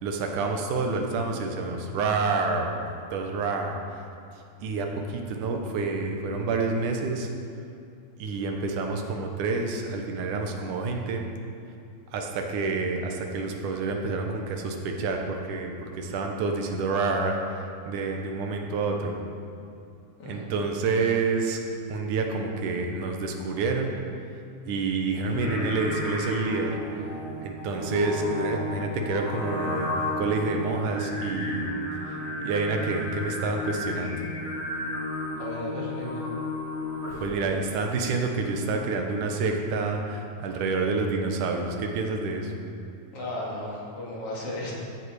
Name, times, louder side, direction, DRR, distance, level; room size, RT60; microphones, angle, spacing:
voice 1, 0.0-3.8 4.6-7.3 8.2-11.2 12.1-19.2 20.3-21.6 21.9-24.0 24.7-27.1 27.4-31.7 32.4-34.3 37.2-42.5, right 3 dB, 70° right, 2 dB, 2.3 m, -28 dB
Singing, 25.2-37.4, left 1 dB, 20° left, 2.5 m, -33 dB
voice 2, 35.4-36.3 43.1-44.7, left 1 dB, 45° left, -5 dB, 2.6 m, -35 dB
14.5 x 7.8 x 4.9 m, 2.5 s
omnidirectional pair, 4.3 m